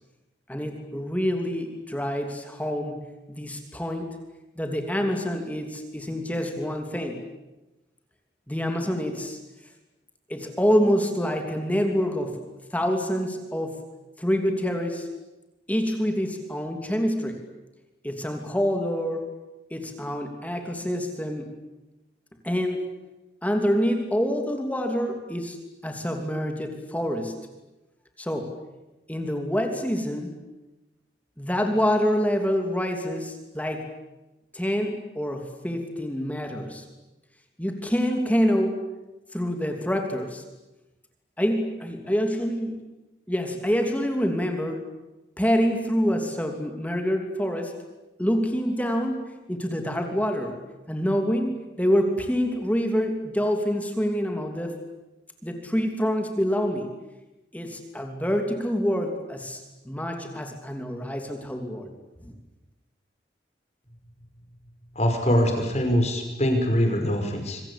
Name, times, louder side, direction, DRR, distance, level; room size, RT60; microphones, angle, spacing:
voice 1, 0.5-3.0 3.3-4.1 4.6-7.2 8.5-9.4 10.3-12.4 12.7-13.7 14.2-15.1 15.7-17.4 18.0-19.2 19.7-21.5 22.4-22.8 23.4-25.6 25.8-27.4 28.2-28.5 29.1-30.3 31.4-33.9 34.5-36.8 37.6-38.9 39.3-40.4 41.4-42.7 43.3-44.8 45.4-47.7 48.2-49.2 49.5-50.6 50.9-54.7 55.4-56.9 57.5-61.9 62.2-62.3, equal, 10° left, 4 dB, 2.8 m, -26 dB
voice 2, 65.0-67.6, equal, 35° left, 4 dB, 5.7 m, -23 dB
27.0 x 24.5 x 8.7 m, 1.0 s
head